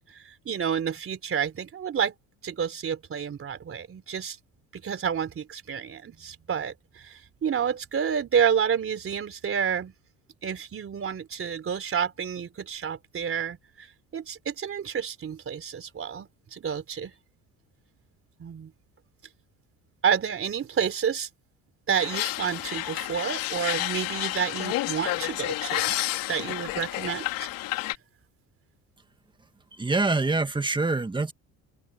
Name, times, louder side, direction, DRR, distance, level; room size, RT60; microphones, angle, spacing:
voice 1, 0.0-2.1 2.4-4.4 4.7-9.9 10.4-13.9 14.1-17.1 18.4-18.7 20.0-21.3 21.9-26.0 26.3-27.5, right 7 dB, 40° right, 3.8 m, -29 dB
sound 1, 22.0-27.9, left 16 dB, 75° left, 3.3 m, -30 dB
voice 2, 29.7-31.3, right 3 dB, 15° right, 1.8 m, -25 dB
open air
cardioid pair, 105°, 34 cm